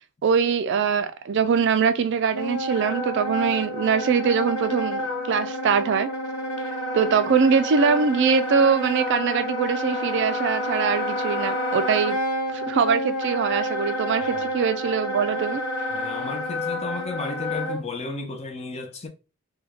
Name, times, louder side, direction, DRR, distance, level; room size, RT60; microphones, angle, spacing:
voice 1, 0.2-6.1 6.9-12.2 12.5-15.6, right 6 dB, 50° right, 0.3 m, -22 dB
Wind instrument woodwind instrument, 2.3-17.8, equal, 70° left, 1.0 m, -29 dB
voice 2, 15.9-19.1, left 3 dB, 30° left, 0.6 m, -33 dB
3.3 x 2.3 x 3.5 m
head